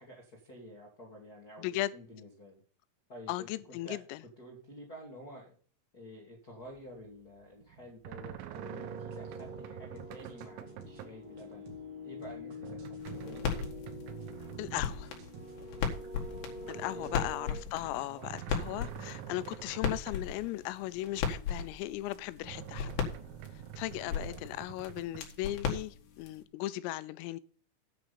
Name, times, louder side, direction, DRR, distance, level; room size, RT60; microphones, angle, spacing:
voice 1, 0.0-2.6 3.1-5.5 5.9-11.6 12.0-13.5 14.4-14.5 16.6-17.2 17.8-18.3 24.1-24.4, equal, 30° left, 1.7 m, -50 dB
voice 2, 1.6-1.9 3.3-4.2 14.6-15.1 16.7-22.9 23.8-27.4, left 16 dB, 85° left, 3.3 m, -37 dB
sound 1, 6.6-7.0 7.3-11.2 11.5-11.9 12.2-15.7 16.1-17.2 17.5-20.4 20.8-20.9 21.6-21.7 22.3-25.4, right 13 dB, 85° right, 3.7 m, -47 dB
sound 2, 8.5-17.6, left 2 dB, 45° right, 2.2 m, -45 dB
sound 3, 13.0-26.4, left 7 dB, 60° left, 3.4 m, -38 dB
9.9 x 6.1 x 7.0 m
omnidirectional pair, 6.0 m